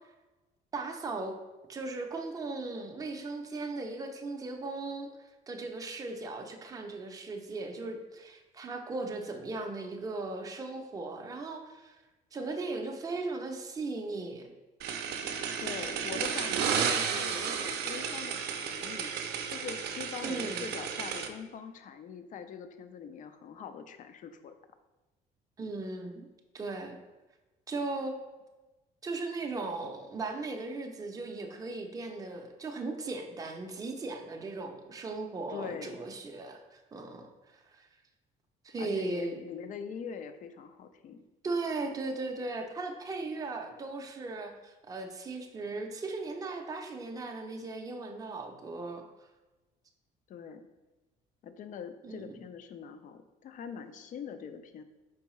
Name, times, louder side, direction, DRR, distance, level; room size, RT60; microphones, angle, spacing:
voice 1, 0.7-1.4 1.7-5.1 5.5-12.0 12.3-14.5 20.2-20.7 25.6-26.3 26.5-27.0 27.7-28.2 29.0-37.9 38.6-39.4 41.4-49.1 52.0-52.4, right 3 dB, 20° right, 3 dB, 0.5 m, -37 dB
sound 1, 14.8-21.3, right 7 dB, 75° right, 0.5 m, -33 dB
voice 2, 15.6-19.1 19.5-24.5 35.5-36.0 38.8-41.2 50.3-50.6 51.4-54.8, left 7 dB, 50° left, 9 dB, 0.4 m, -43 dB
4.6 x 3.4 x 3.1 m, 1.1 s
cardioid pair, 110°, 17 cm